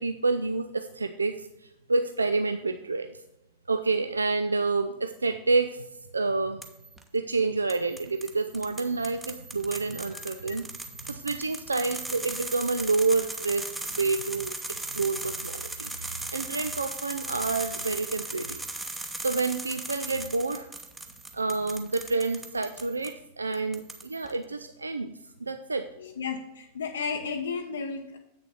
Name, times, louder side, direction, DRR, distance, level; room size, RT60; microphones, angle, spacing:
voice 1, 0.0-3.1 3.7-5.9 6.1-6.6 7.1-10.6 11.0-14.5 14.9-18.6 19.2-20.7 21.3-25.1 25.4-25.9, right 3 dB, 80° right, 9 dB, 0.3 m, -28 dB
sound 1, 6.6-7.0 7.7-23.1 23.5-24.3, right 2 dB, 10° right, 0.9 m, -38 dB
voice 2, 26.0-28.2, left 5 dB, 70° left, 3 dB, 0.5 m, -33 dB
8.0 x 6.8 x 4.3 m, 0.89 s
figure-of-eight pair, 90°, 0 cm